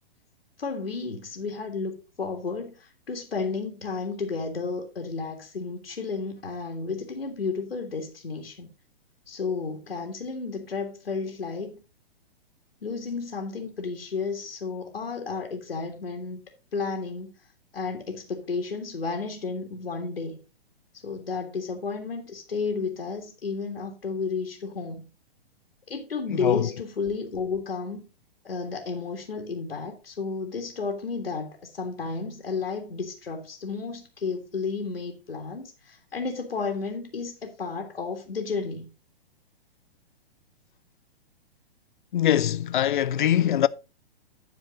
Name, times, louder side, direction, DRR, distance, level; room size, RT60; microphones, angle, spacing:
voice 1, 0.6-8.7 9.3-11.8 12.8-16.4 16.7-17.3 17.7-20.4 21.0-25.1 25.9-28.1 28.4-38.9, left 4 dB, 75° left, 1.9 m, -32 dB
voice 2, 26.3-26.7 42.1-43.7, left 11 dB, 55° left, 0.5 m, -22 dB
10.5 x 4.6 x 5.0 m
figure-of-eight pair, 115°, 31 cm